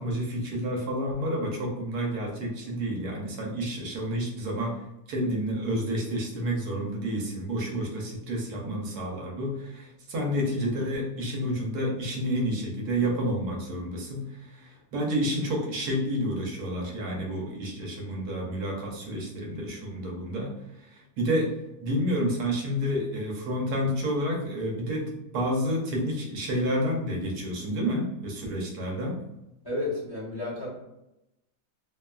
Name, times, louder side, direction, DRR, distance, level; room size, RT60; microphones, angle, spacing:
voice 1, 0.0-4.8 5.1-20.6 20.8-29.2, equal, 70° right, -1 dB, 1.1 m, -30 dB
voice 2, 29.6-30.7, left 2 dB, 20° left, -10 dB, 0.7 m, -31 dB
3.0 x 2.2 x 2.2 m, 0.91 s
omnidirectional pair, 1.8 m